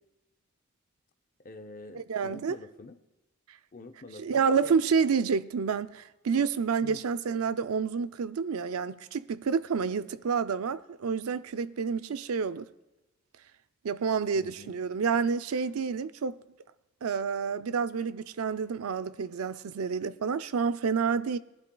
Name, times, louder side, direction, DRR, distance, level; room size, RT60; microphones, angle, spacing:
voice 1, 1.4-3.0 3.7-4.8 6.8-7.0 14.3-14.8, left 2 dB, 40° left, 0.6 m, -47 dB
voice 2, 1.9-2.6 4.2-12.7 13.8-16.4 17.0-21.4, right 6 dB, 80° right, 0.4 m, -29 dB
20.0 x 11.5 x 2.3 m
head